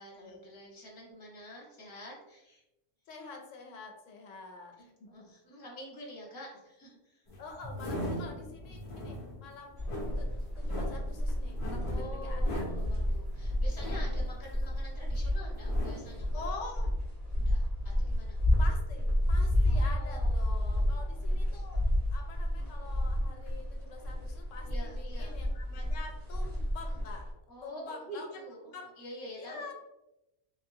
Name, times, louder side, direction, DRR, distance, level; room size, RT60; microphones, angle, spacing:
voice 1, 0.0-2.6 4.8-7.3 11.8-16.6 17.3-17.7 18.0-18.4 19.7-21.3 24.6-25.4 27.5-29.7, equal, 20° left, -4 dB, 0.7 m, -47 dB
voice 2, 3.1-4.9 7.4-9.9 10.2-10.3 10.6-12.6 16.3-16.9 18.6-21.8 22.1-27.3 27.6-28.3 28.7-28.9 29.4-29.7, left 4 dB, 85° left, 2 dB, 0.9 m, -46 dB
sound 1, 7.3-15.2 15.5-16.3, equal, 45° left, 0.4 m, -40 dB
sound 2, 9.8-27.3, left 1 dB, 55° right, 1.5 m, -31 dB
3.0 x 2.1 x 2.6 m, 0.93 s
omnidirectional pair, 1.3 m